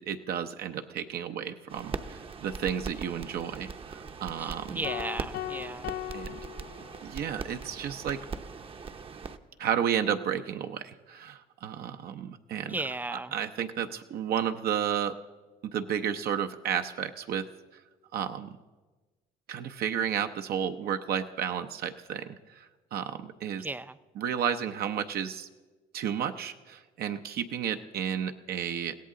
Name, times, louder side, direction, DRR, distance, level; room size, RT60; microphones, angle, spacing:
voice 1, 0.0-4.8 6.1-6.4 6.8-8.2 9.6-12.7 13.1-15.2 15.6-17.5 17.7-17.8 18.1-18.6 19.5-23.7 24.2-25.5 25.9-28.9, right 9 dB, 65° right, 7 dB, 0.7 m, -32 dB
sound 1, 1.7-9.4, right 5 dB, 35° right, 0.8 m, -41 dB
voice 2, 4.4-5.9 12.6-13.3 23.6-24.0, right 2 dB, 10° right, 15 dB, 0.4 m, -35 dB
sound 2, 4.8-7.3, left 13 dB, 60° left, 0.4 m, -38 dB
22.0 x 16.5 x 3.8 m, 1.2 s
cardioid pair, 110°, 17 cm